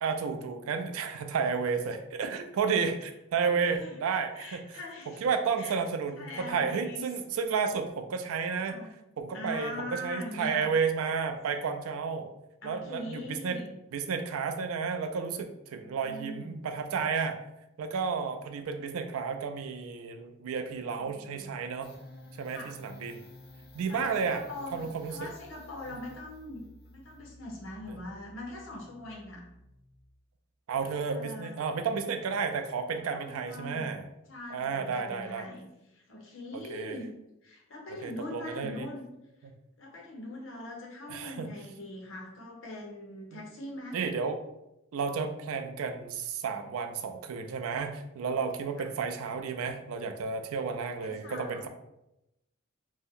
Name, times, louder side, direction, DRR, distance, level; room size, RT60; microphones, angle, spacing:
voice 1, 0.0-4.8 5.1-8.8 9.2-12.3 12.6-13.6 13.9-17.4 17.8-21.9 22.4-23.2 23.7-24.4 24.7-25.3 30.7-34.1 34.5-35.5 36.7-37.0 38.0-38.9 39.4-39.5 41.1-41.5 43.9-44.4 44.9-51.7, right 5 dB, 90° right, 7 dB, 0.4 m, -32 dB
voice 2, 3.4-4.0 4.4-5.2 5.6-5.8 6.2-7.0 8.7-9.0 9.3-10.7 12.6-13.8 15.7-16.5 21.0-21.5 22.5-22.7 23.9-29.4 30.8-31.5 32.9-33.9 34.3-37.1 37.4-39.1 39.8-44.0 48.8-48.9 51.0-51.7, left 1 dB, 70° left, -1 dB, 0.8 m, -42 dB
sound 1, 21.8-30.3, left 1 dB, 45° left, 0.4 m, -53 dB
2.7 x 2.0 x 3.5 m, 0.88 s
head